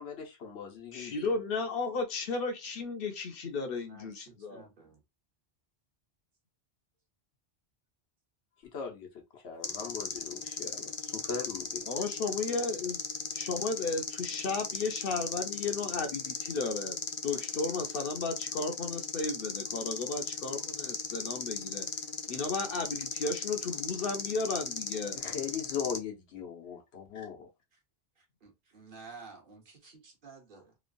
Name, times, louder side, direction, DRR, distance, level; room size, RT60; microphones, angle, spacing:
voice 1, 0.0-1.3 8.7-9.1 9.3-11.8 25.1-27.5, left 7 dB, 85° left, 1.1 m, -39 dB
voice 2, 0.9-4.6 11.9-13.0 13.3-17.0 17.2-21.9 22.3-25.2, left 3 dB, 65° left, 0.8 m, -34 dB
voice 3, 3.8-5.0 27.7-27.8 28.2-30.8, right 4 dB, 55° right, 1.0 m, -52 dB
sound 1, 9.6-26.0, left 5 dB, 45° left, 0.4 m, -37 dB
3.0 x 2.2 x 2.5 m
omnidirectional pair, 1.1 m